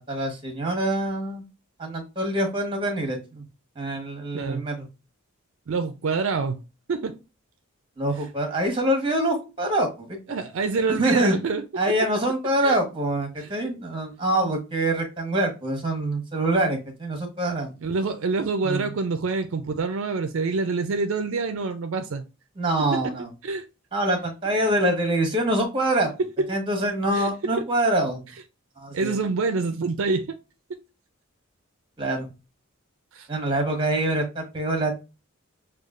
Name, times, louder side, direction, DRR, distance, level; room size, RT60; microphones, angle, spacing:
voice 1, 0.1-1.4 1.8-3.4 3.7-4.9 8.0-10.4 10.9-11.4 11.8-17.7 18.6-18.9 22.6-23.3 23.9-26.1 26.5-28.2 28.8-29.1 32.0-32.3 33.3-34.9, right 1 dB, 25° right, 1.1 m, -25 dB
voice 2, 4.3-4.6 5.7-6.6 6.9-7.1 10.3-11.6 12.6-12.8 13.4-13.5 17.8-22.2 22.9-23.0 23.4-23.7 26.4-26.5 27.1-27.3 28.9-30.4 30.7-30.8 33.1-33.3, right 4 dB, 65° right, 0.4 m, -26 dB
6.3 x 2.4 x 2.4 m
head